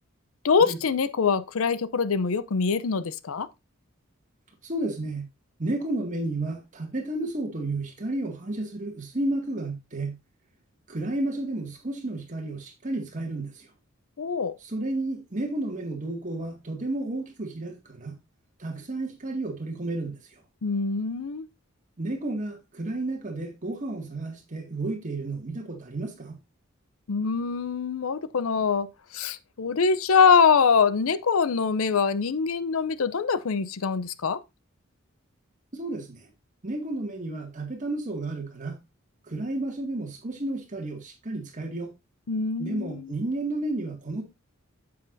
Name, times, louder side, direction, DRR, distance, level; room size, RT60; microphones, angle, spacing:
voice 1, 0.4-3.5 14.2-14.5 20.6-21.4 27.1-28.9 29.1-34.4 42.3-43.1, left 5 dB, 80° left, 0.6 m, -24 dB
voice 2, 4.6-5.3 5.6-10.2 10.9-13.7 14.6-18.2 18.6-20.4 22.0-26.4 35.7-36.3 36.6-38.8 39.3-41.9 42.6-44.2, right 2 dB, 35° right, 2.1 m, -32 dB
8.9 x 7.8 x 2.6 m
head